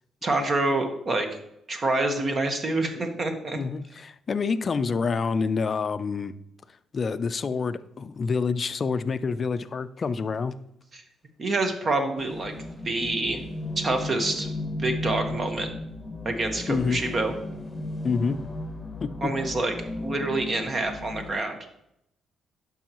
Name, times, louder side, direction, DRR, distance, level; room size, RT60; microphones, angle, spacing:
voice 1, 0.2-1.3 1.7-3.6 10.9-11.0 11.4-12.5 12.8-13.4 13.8-14.5 14.8-15.7 16.2-17.3 19.2-19.7 20.0-21.6, right 2 dB, 40° right, 5 dB, 1.3 m, -27 dB
voice 2, 3.5-6.3 6.9-10.5 16.7-17.0 18.0-18.4 19.0-19.3, left 5 dB, 40° left, 14 dB, 0.4 m, -27 dB
sound 1, 12.2-21.4, left 2 dB, 15° left, 1.1 m, -35 dB
11.5 x 5.4 x 3.0 m, 0.78 s
cardioid pair, 90°, 0 cm